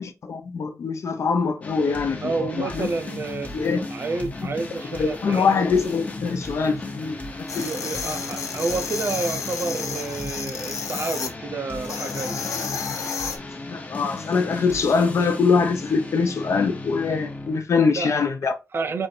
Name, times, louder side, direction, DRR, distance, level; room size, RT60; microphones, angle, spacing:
voice 1, 0.0-2.9 3.5-3.8 4.9-7.2 7.5-8.1 13.6-18.5, left 5 dB, 60° left, 0.9 m, -23 dB
sound 1, 1.6-17.6, left 2 dB, 25° left, 0.9 m, -36 dB
voice 2, 2.2-3.5 3.9-5.7 7.6-12.4 18.0-18.3 18.7-19.1, right 3 dB, 45° right, 0.5 m, -29 dB
sound 2, 7.5-11.3 11.8-13.4, left 5 dB, 85° left, 1.0 m, -31 dB
4.4 x 2.6 x 4.4 m
wide cardioid pair, 125°, 6 cm